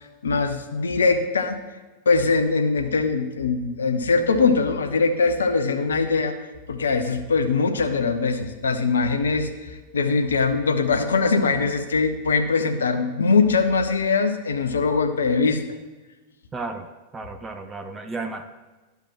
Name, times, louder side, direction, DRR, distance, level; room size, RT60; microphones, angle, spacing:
voice 1, 0.2-1.6 2.1-6.3 6.7-15.6, left 4 dB, 70° left, 7 dB, 0.6 m, -22 dB
voice 2, 16.5-16.9 17.1-18.4, right 3 dB, 20° right, 9 dB, 0.5 m, -33 dB
11.5 x 5.8 x 2.9 m, 1.2 s
figure-of-eight pair, 90°, 0 cm